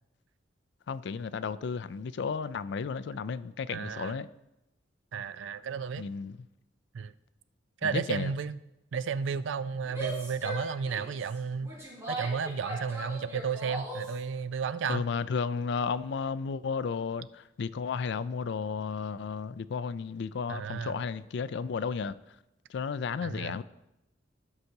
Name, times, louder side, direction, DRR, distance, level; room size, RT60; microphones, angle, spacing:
voice 1, 0.9-4.3 6.0-6.4 7.8-8.3 14.9-22.2 22.7-23.6, left 5 dB, 65° left, 0.4 m, -33 dB
voice 2, 3.7-4.2 5.1-6.0 6.9-7.1 7.8-8.6 8.9-11.7 12.1-15.0 20.5-21.0 23.2-23.6, right 6 dB, 80° right, 0.4 m, -33 dB
Female speech woman speaking / Yell, 9.8-14.2, right 1 dB, 15° right, 3.9 m, -39 dB
16.0 x 6.5 x 2.8 m
head